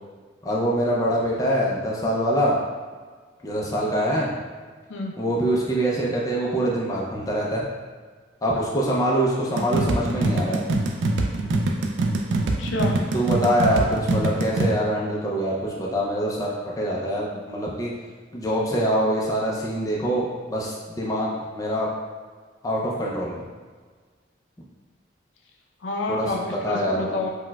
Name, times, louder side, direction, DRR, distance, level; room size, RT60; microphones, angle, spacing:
voice 1, 0.4-2.6 3.4-4.3 5.2-7.6 8.4-10.6 13.1-17.9 18.3-21.9 22.6-23.3 26.1-26.3 26.6-27.2, equal, 20° left, -4 dB, 0.4 m, -24 dB
sound 1, 9.6-14.7, right 2 dB, 70° right, 0.3 m, -24 dB
voice 2, 12.6-13.0 25.8-27.3, left 2 dB, 80° left, 0 dB, 0.5 m, -28 dB
4.2 x 2.2 x 2.2 m, 1.5 s
head